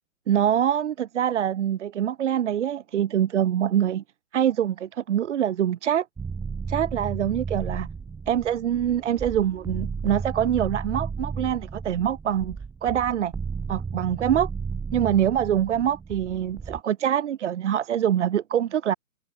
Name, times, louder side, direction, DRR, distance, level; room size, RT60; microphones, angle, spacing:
voice 1, 0.3-4.0 4.3-6.1 6.7-7.9 8.3-13.3 13.7-14.5 14.9-18.9, right 10 dB, 55° right, 1.1 m, -24 dB
sound 1, 6.2-16.8, right 5 dB, 10° right, 4.6 m, -34 dB
hypercardioid pair, 145°, 41 cm